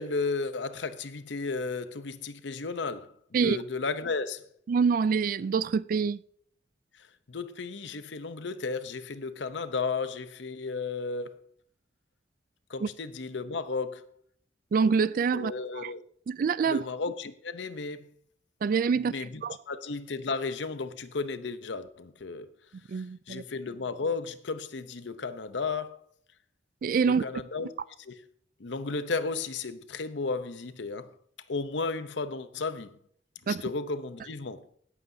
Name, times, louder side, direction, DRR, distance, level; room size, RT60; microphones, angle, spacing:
voice 1, 0.0-4.5 7.0-11.4 12.7-14.0 15.3-16.0 16.6-18.1 18.9-22.5 22.9-26.0 27.0-27.7 28.0-28.2 28.6-31.1 31.5-33.0 33.4-34.6, left 4 dB, 80° left, 0.7 m, -34 dB
voice 2, 4.7-6.2 12.8-12.9 14.7-15.9 16.3-16.8 18.6-19.1 19.4-19.6 22.9-23.4 26.8-27.2 33.5-33.6, right 5 dB, 50° right, 0.3 m, -26 dB
17.0 x 8.5 x 2.7 m
head